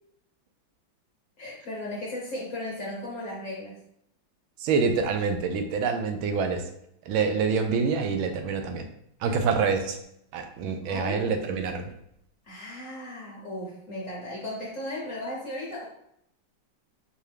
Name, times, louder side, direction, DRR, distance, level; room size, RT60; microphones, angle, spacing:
voice 1, 1.4-3.8 9.3-9.4 10.9-11.3 12.5-15.8, left 1 dB, 55° left, -4 dB, 1.0 m, -36 dB
voice 2, 4.6-6.7 7.0-8.9 9.2-10.0 10.3-11.9, right 5 dB, 85° right, 6 dB, 1.4 m, -26 dB
4.5 x 2.6 x 3.3 m, 0.75 s
omnidirectional pair, 2.2 m